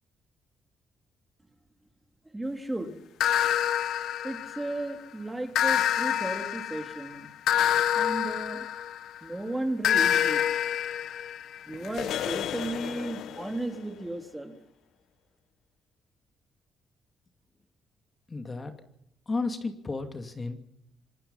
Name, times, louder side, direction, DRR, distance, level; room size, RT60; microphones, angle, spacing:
voice 1, 2.3-2.9 4.2-7.3 8.0-8.7 9.2-10.4 11.7-14.5, right 1 dB, 10° right, 5 dB, 3.5 m, -34 dB
sound 1, 3.2-4.9 5.5-9.2 9.8-13.6, left 10 dB, 80° left, 1.0 m, -27 dB
voice 2, 18.3-18.7 19.3-20.6, left 3 dB, 30° left, 6 dB, 2.6 m, -33 dB
26.5 x 19.5 x 5.7 m, 0.77 s
cardioid pair, 90°, 0 cm